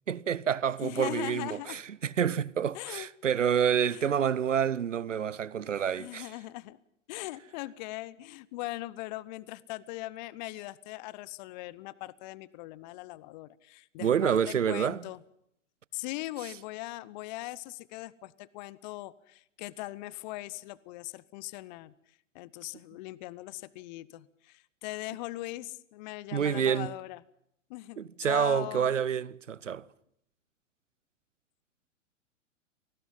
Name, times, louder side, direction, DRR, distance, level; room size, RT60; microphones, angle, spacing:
voice 1, 0.1-6.3 14.0-15.0 26.3-26.9 28.0-29.8, right 8 dB, 75° right, 0.9 m, -28 dB
voice 2, 0.8-1.8 2.7-3.1 3.9-4.1 5.1-5.3 5.7-6.8 7.1-15.2 15.9-27.2 27.7-28.9, left 18 dB, 35° left, 0.9 m, -40 dB
28.5 x 19.5 x 5.5 m
figure-of-eight pair, 105°, 38 cm